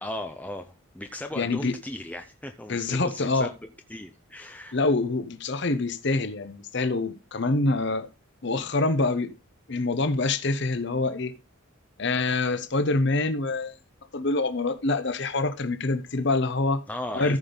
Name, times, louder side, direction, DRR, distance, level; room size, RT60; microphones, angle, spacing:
voice 1, 0.0-3.5 3.9-4.8 16.9-17.4, left 1 dB, 5° left, 0.6 m, -36 dB
voice 2, 1.4-1.7 2.7-3.5 4.7-8.1 8.4-9.3 9.7-11.3 12.0-13.7 14.1-16.8 17.1-17.4, left 3 dB, 55° left, 0.8 m, -25 dB
14.5 x 5.3 x 3.9 m
head